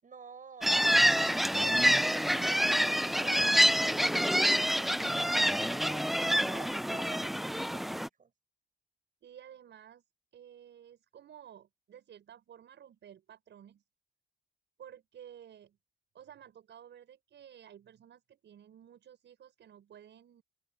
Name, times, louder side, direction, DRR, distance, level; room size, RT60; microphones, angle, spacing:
voice 1, 0.0-7.8 8.2-8.3, right 6 dB, 40° right, 7.9 m, -52 dB
sound 1, 0.6-8.1, equal, ahead, 0.4 m, -27 dB
voice 2, 9.2-10.0 10.3-13.8 14.8-15.8 16.1-20.4, right 9 dB, 65° right, 6.7 m, -53 dB
open air
cardioid pair, 90°, 20 cm